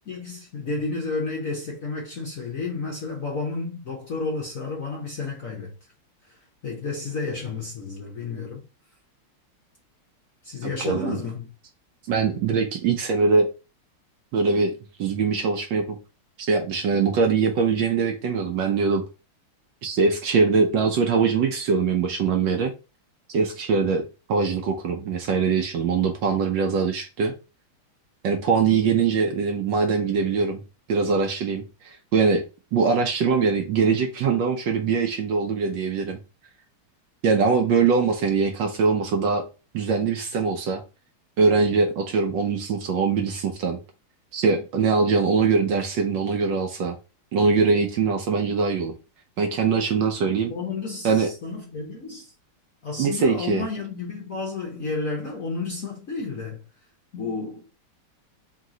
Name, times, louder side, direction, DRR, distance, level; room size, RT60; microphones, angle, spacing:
voice 1, 0.1-5.7 6.3-8.6 10.4-11.5 50.5-52.3 52.8-56.6 57.1-57.7, left 3 dB, 55° left, 0.9 m, -31 dB
voice 2, 10.6-11.2 12.1-13.5 14.3-14.7 15.0-16.0 16.4-19.0 19.8-22.7 23.3-27.3 28.2-30.6 30.9-32.4 32.7-36.2 37.2-39.4 39.7-40.8 41.4-43.8 44.3-47.0 47.3-48.9 49.4-50.5 51.0-51.3 53.0-53.6, right 5 dB, 70° right, 1.2 m, -22 dB
3.7 x 3.0 x 3.7 m
omnidirectional pair, 2.4 m